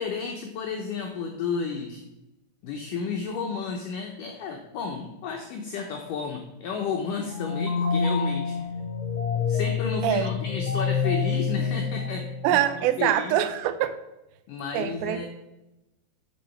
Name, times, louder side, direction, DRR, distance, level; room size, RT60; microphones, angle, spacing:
voice 1, 0.0-2.0 2.6-8.7 9.5-12.6 13.0-13.4 14.5-15.3, left 5 dB, 85° left, 3 dB, 1.8 m, -32 dB
sound 1, 7.2-12.7, left 6 dB, 15° left, 1.7 m, -27 dB
voice 2, 12.4-14.0 14.7-15.2, right 12 dB, 90° right, 11 dB, 2.1 m, -24 dB
8.1 x 6.4 x 5.8 m, 0.95 s
omnidirectional pair, 4.9 m